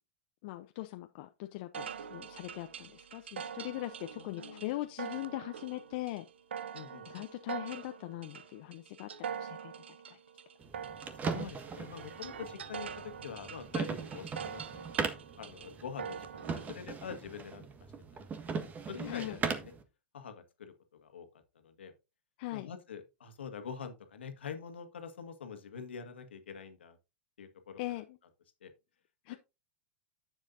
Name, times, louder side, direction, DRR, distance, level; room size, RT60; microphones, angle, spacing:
voice 1, 0.4-6.2 7.1-9.7 10.1-10.2 19.0-19.4 22.4-22.7 27.8-28.2 29.2-29.4, left 18 dB, 60° left, 0.7 m, -40 dB
sound 1, 1.7-16.7, right 7 dB, 85° right, 0.6 m, -44 dB
voice 2, 4.2-4.8 6.7-7.1 11.1-17.7 18.1-18.2 18.5-19.7 20.1-21.3 21.6-21.9 22.5-27.0 27.4-28.0 28.6-28.7, left 7 dB, 85° left, 1.8 m, -45 dB
sound 2, 10.6-19.8, right 5 dB, 25° right, 1.5 m, -39 dB
10.5 x 7.4 x 2.6 m
hypercardioid pair, 100°, 6 cm